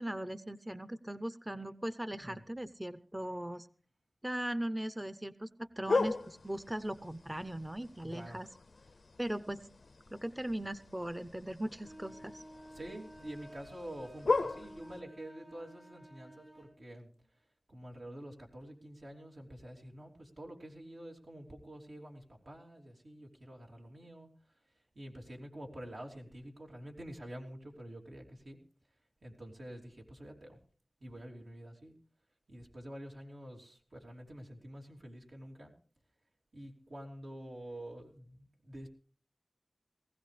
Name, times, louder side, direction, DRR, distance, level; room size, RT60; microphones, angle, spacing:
voice 1, 0.0-3.7 4.2-8.5 9.2-9.7 10.1-12.4, right 1 dB, 20° right, 13 dB, 0.6 m, -39 dB
voice 2, 2.1-2.4 8.1-8.4 8.9-9.0 12.7-28.6 29.2-30.6 31.0-31.9 32.5-35.7 36.5-38.9, right 1 dB, 80° right, -1 dB, 3.0 m, -48 dB
sound 1, 5.9-15.0, left 3 dB, 85° left, 0.6 m, -38 dB
sound 2, 11.8-16.7, right 1 dB, 40° right, 4.7 m, -53 dB
19.0 x 15.5 x 3.3 m, 0.42 s
wide cardioid pair, 45°, 0 cm